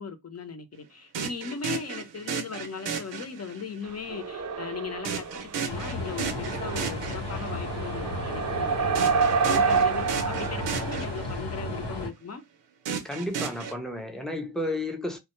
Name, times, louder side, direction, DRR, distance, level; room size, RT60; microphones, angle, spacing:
voice 1, 0.0-5.3 5.5-12.4, left 5 dB, 35° left, 0.7 m, -38 dB
sound 1, 1.1-3.8 5.0-7.7 8.9-11.6 12.9-13.7, right 6 dB, 85° right, 0.7 m, -34 dB
sound 2, 4.1-5.6 6.1-11.2, right 5 dB, 40° right, 0.5 m, -28 dB
sound 3, 5.7-12.1, left 2 dB, 75° left, 1.0 m, -34 dB
voice 2, 13.0-15.2, left 1 dB, ahead, 0.7 m, -32 dB
2.2 x 2.1 x 3.0 m
cardioid pair, 80°, 43 cm